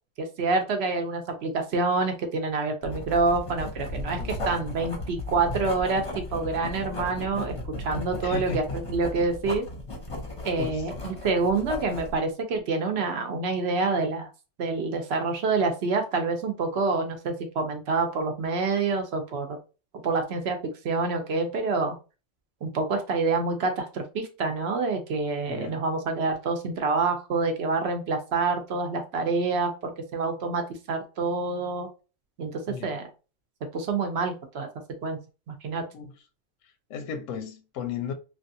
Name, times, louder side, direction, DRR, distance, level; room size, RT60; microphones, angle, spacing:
voice 1, 0.2-4.2 4.5-9.6 10.4-14.3 14.6-19.6 20.0-20.6 20.8-22.0 22.6-31.9 32.4-33.1 33.7-34.7 35.0-35.2 35.5-35.8, right 4 dB, 65° right, 0.8 m, -27 dB
Writing, 2.8-12.2, left 1 dB, 30° left, 0.7 m, -35 dB
voice 2, 8.2-8.8 10.6-11.1 25.5-25.8 32.7-32.9 35.9-36.1 36.9-38.1, left 6 dB, 85° left, 1.0 m, -35 dB
3.2 x 2.3 x 2.6 m
omnidirectional pair, 1.3 m